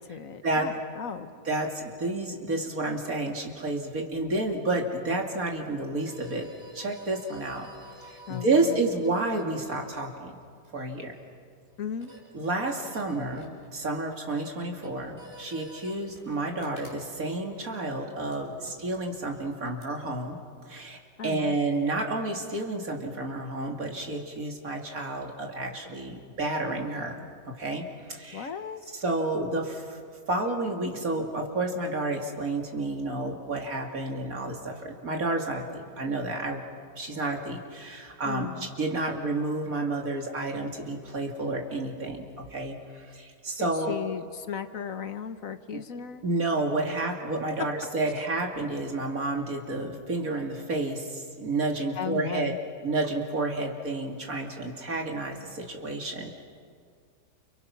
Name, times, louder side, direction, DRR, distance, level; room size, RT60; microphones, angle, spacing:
voice 1, 0.0-1.3 8.3-8.8 11.8-12.1 21.2-21.6 28.3-28.8 38.2-38.7 43.6-46.2 47.0-47.1 52.0-52.6, left 8 dB, 60° left, 10 dB, 1.4 m, -36 dB
voice 2, 1.4-6.5 6.7-7.7 8.0-10.4 10.7-11.1 12.3-20.4 20.7-28.5 28.9-30.0 30.3-36.6 37.0-43.9 45.7-45.8 46.2-52.5 52.8-56.4, right 2 dB, 60° right, 1 dB, 3.0 m, -30 dB
sound 1, 6.0-20.4, equal, 35° right, 5.3 m, -52 dB
30.0 x 29.5 x 6.0 m, 2.1 s
omnidirectional pair, 1.7 m